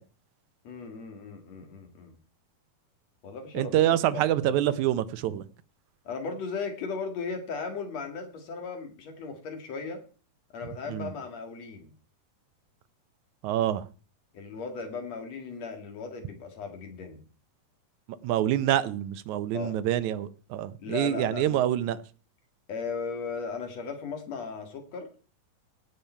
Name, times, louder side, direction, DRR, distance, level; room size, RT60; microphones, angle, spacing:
voice 1, 0.6-2.1 3.2-4.5 6.0-10.0 10.5-11.9 14.3-17.2 19.5-19.8 20.8-21.6 22.7-25.1, left 5 dB, 55° left, 5 dB, 3.1 m, -37 dB
voice 2, 3.5-5.4 10.9-11.1 13.4-13.9 18.2-22.0, right 12 dB, 75° right, 14 dB, 2.0 m, -26 dB
17.0 x 7.2 x 4.5 m, 0.39 s
omnidirectional pair, 3.8 m